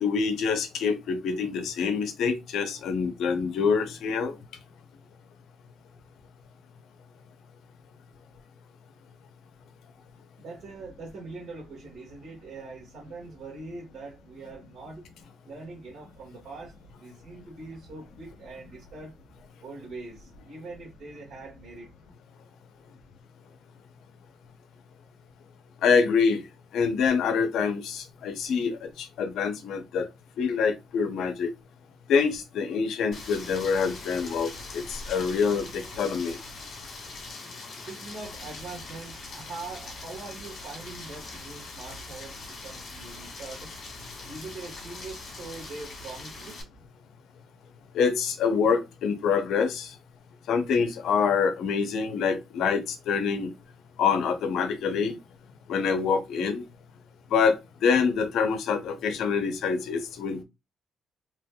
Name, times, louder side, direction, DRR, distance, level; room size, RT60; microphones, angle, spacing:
voice 1, 0.0-4.3 25.8-26.4 26.7-30.1 30.4-31.5 32.1-36.4 47.9-49.9 50.5-53.5 54.0-55.2 55.7-56.6 57.3-60.4, left 6 dB, 75° left, 0.6 m, -26 dB
voice 2, 10.4-15.0 15.4-19.1 19.6-21.9 37.9-43.7 44.2-46.6, right 3 dB, 70° right, 1.4 m, -42 dB
Rain, 33.1-46.6, left 3 dB, 60° left, 1.4 m, -42 dB
3.3 x 2.9 x 2.2 m
cardioid pair, 90°, 0 cm